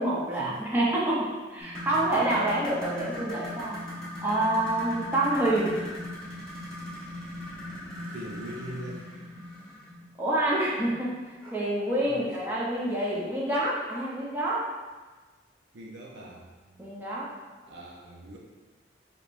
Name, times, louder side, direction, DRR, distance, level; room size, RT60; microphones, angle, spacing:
voice 1, 0.0-3.8 4.2-5.7 10.2-11.2 11.5-14.7 16.8-17.3, right 1 dB, 10° right, -6 dB, 0.8 m, -27 dB
sound 1, 1.6-10.0 11.4-11.6 12.0-12.1 12.8-12.9, left 1 dB, 5° left, 1.4 m, -39 dB
voice 2, 8.1-9.1 12.1-12.4 15.7-16.8 17.7-18.4, right 1 dB, 65° right, -2 dB, 0.6 m, -42 dB
5.1 x 3.1 x 2.6 m, 1.3 s
head